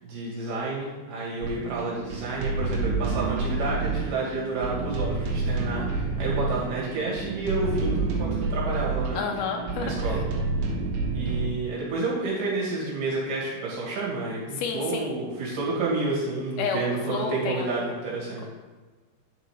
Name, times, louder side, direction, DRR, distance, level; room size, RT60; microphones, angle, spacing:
voice 1, 0.0-9.2 9.8-10.2 11.1-18.5, right 3 dB, 60° right, -5 dB, 3.4 m, -30 dB
sound 1, 1.4-11.5, right 3 dB, 85° right, 3.3 m, -29 dB
voice 2, 9.2-10.2 14.5-15.1 16.6-17.8, left 5 dB, 75° left, 3 dB, 2.4 m, -30 dB
9.9 x 5.0 x 4.9 m, 1.3 s
omnidirectional pair, 4.7 m